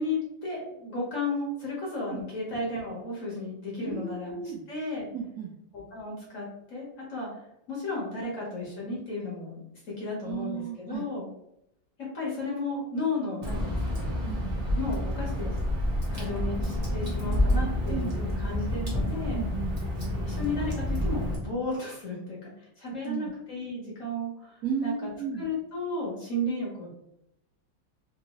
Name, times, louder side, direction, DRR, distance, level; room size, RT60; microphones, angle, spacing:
voice 1, 0.0-4.4 4.7-5.1 5.7-7.3 7.7-9.6 10.0-11.3 12.1-14.1 14.8-15.6 16.1-19.4 20.2-24.9 25.3-26.9, left 2 dB, 50° left, -5 dB, 1.1 m, -34 dB
voice 2, 3.8-4.6 5.1-5.5 10.2-11.0 14.2-14.6 17.9-18.4 19.3-19.8 23.0-23.3 24.6-25.5, right 7 dB, 75° right, -1 dB, 0.9 m, -34 dB
Water / Drip, 13.4-21.4, left 1 dB, 40° right, 0.6 m, -29 dB
3.6 x 2.6 x 2.9 m, 0.80 s
omnidirectional pair, 2.1 m